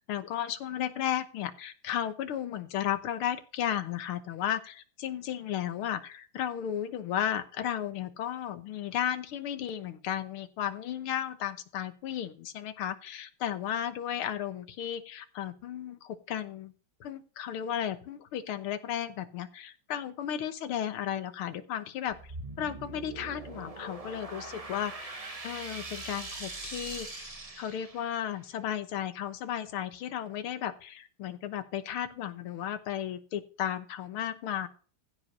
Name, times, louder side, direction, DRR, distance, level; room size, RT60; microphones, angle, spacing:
voice 1, 0.0-16.7 17.0-25.2 25.4-27.3 27.6-34.7, left 10 dB, 85° left, 12 dB, 2.0 m, -34 dB
sound 1, 22.1-28.4, right 2 dB, 20° right, 1.2 m, -42 dB
15.0 x 5.1 x 5.3 m, 0.39 s
omnidirectional pair, 2.3 m